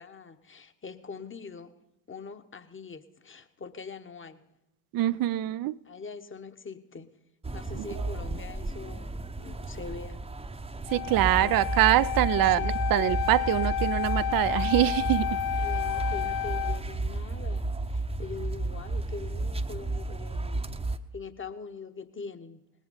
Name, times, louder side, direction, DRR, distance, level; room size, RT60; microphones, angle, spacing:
voice 1, 0.0-1.7 2.1-4.5 5.8-7.2 7.5-10.2 11.3-11.7 12.5-12.8 15.6-20.6 21.1-22.6, left 5 dB, 25° left, 1.1 m, -43 dB
voice 2, 4.9-5.8 7.8-7.9 10.9-15.3, right 15 dB, 45° right, 0.5 m, -24 dB
sound 1, 7.4-21.0, right 2 dB, 10° right, 0.8 m, -33 dB
Wind instrument woodwind instrument, 10.9-16.8, left 12 dB, 45° left, 0.5 m, -31 dB
19.5 x 8.2 x 5.5 m
hypercardioid pair, 50°, 49 cm